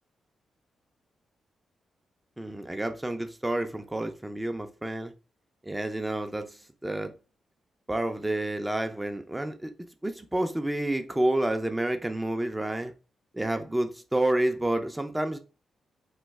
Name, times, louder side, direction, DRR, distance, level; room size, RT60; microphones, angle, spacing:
voice 1, 2.4-5.1 5.6-7.1 7.9-9.7 10.0-12.9 13.3-15.4, right 1 dB, 15° right, 0.5 m, -29 dB
3.1 x 2.3 x 3.4 m
cardioid pair, 60°, 0 cm